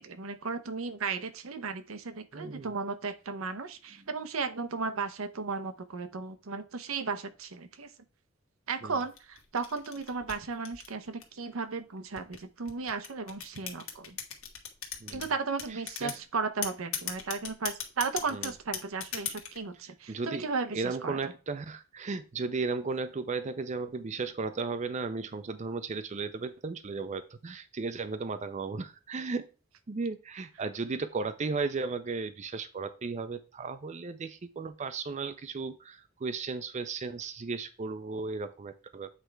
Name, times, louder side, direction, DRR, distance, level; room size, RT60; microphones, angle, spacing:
voice 1, 0.0-7.9 8.7-14.2 15.1-21.3, right 4 dB, 85° right, 9 dB, 0.7 m, -35 dB
voice 2, 2.3-2.7 8.8-8.9 15.0-15.2 16.0-16.1 18.3-18.5 20.1-29.4 29.9-39.1, right 4 dB, 35° right, 10 dB, 0.4 m, -35 dB
sound 1, 9.0-11.5 12.1-15.3 15.6-16.2 16.6-19.6, left 9 dB, 85° left, 1.3 m, -37 dB
8.1 x 3.3 x 4.6 m, 0.33 s
head